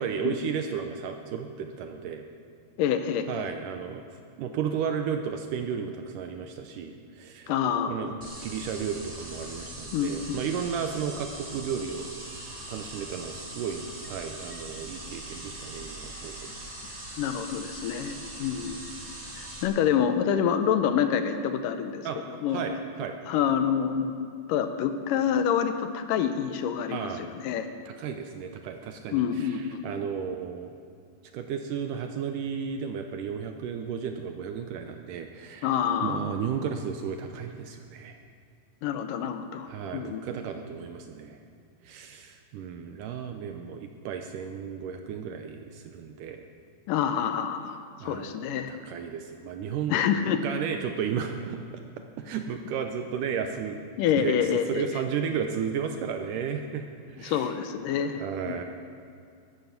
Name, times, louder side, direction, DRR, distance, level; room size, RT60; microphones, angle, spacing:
voice 1, 0.0-2.2 3.3-7.5 7.9-16.4 22.1-22.2 22.5-23.2 26.9-27.3 27.9-30.8 31.3-35.7 36.0-38.2 39.7-41.4 41.8-46.4 48.0-49.9 50.4-51.8 52.2-53.9 54.2-57.5 58.1-58.6, right 7 dB, 80° right, 6 dB, 2.0 m, -34 dB
voice 2, 2.8-3.5 7.5-8.1 9.9-10.6 17.2-18.9 19.4-22.7 23.3-27.7 29.1-30.1 35.6-36.3 38.8-40.2 46.9-48.7 49.9-50.4 54.0-54.9 57.2-58.6, left 8 dB, 75° left, 8 dB, 2.1 m, -27 dB
sound 1, 8.2-19.6, right 1 dB, 25° right, 1.4 m, -41 dB
14.0 x 12.0 x 7.1 m, 2.4 s
omnidirectional pair, 4.3 m